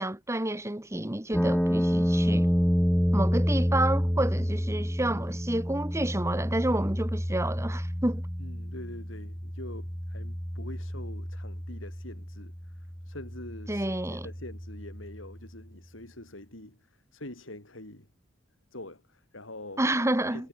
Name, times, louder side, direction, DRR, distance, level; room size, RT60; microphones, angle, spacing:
voice 1, 0.0-2.5 3.1-8.2 13.7-14.3 19.8-20.5, right 1 dB, 15° right, 1.5 m, -29 dB
sound 1, 1.3-15.4, equal, 5° left, 2.8 m, -29 dB
voice 2, 8.4-12.5 13.0-18.1 18.7-19.8 20.3-20.5, left 1 dB, 80° left, 5.8 m, -45 dB
head